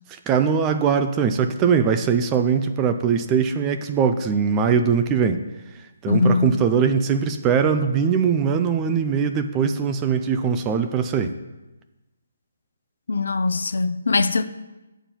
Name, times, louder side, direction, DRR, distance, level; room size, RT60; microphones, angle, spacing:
voice 1, 0.1-5.4 6.0-11.4, right 6 dB, 15° right, 0.4 m, -21 dB
voice 2, 6.1-6.6 13.1-14.4, left 3 dB, 70° left, 0.5 m, -21 dB
10.5 x 7.0 x 4.4 m
hypercardioid pair, 175°, 0 cm